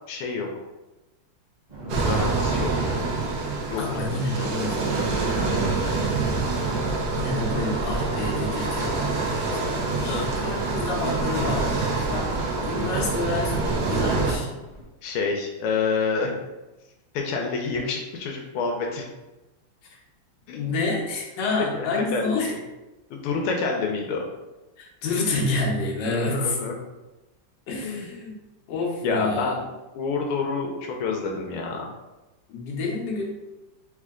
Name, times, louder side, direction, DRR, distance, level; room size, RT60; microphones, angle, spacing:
voice 1, 0.1-0.5 1.8-3.1 3.7-4.5 9.6-10.3 15.0-16.4 17.1-19.0 20.5-20.7 21.7-22.4 23.1-24.2 26.0-26.7 27.8-28.1 29.0-29.6 29.9-31.9, left 4 dB, 85° left, 1 dB, 1.5 m, -28 dB
sound 1, 1.7-14.8, right 2 dB, 35° right, 0.7 m, -39 dB
sound 2, 1.9-14.3, right 3 dB, 60° right, 1.0 m, -26 dB
voice 2, 3.8-6.4 7.1-14.5 17.7-17.9 19.8-20.0 20.5-22.5 24.8-26.6 27.7-28.3 28.7-29.6 32.5-33.4, left 3 dB, 65° left, -2 dB, 1.5 m, -29 dB
3.7 x 3.3 x 3.6 m, 1.0 s
omnidirectional pair, 2.3 m